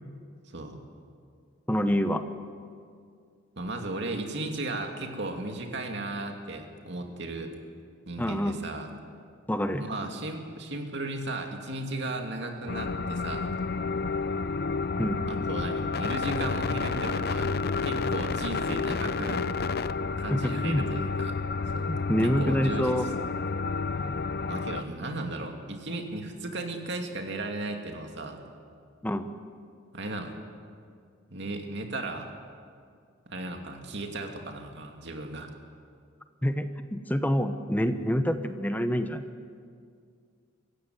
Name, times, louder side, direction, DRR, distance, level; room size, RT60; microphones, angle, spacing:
voice 1, 1.7-2.2 8.2-8.6 9.5-9.9 15.0-15.2 20.3-20.8 21.9-23.1 29.0-29.3 36.4-39.3, equal, 10° left, 9 dB, 0.9 m, -27 dB
voice 2, 3.6-7.5 8.0-8.9 9.8-13.5 15.3-17.5 17.8-19.4 20.2-21.4 21.7-22.0 22.2-23.2 24.5-28.4 29.9-30.3 31.3-32.3 33.3-35.5, right 2 dB, 60° right, 3 dB, 2.7 m, -35 dB
sound 1, 12.7-24.8, left 4 dB, 50° left, 0.6 m, -30 dB
24.5 x 15.0 x 9.8 m, 2.2 s
head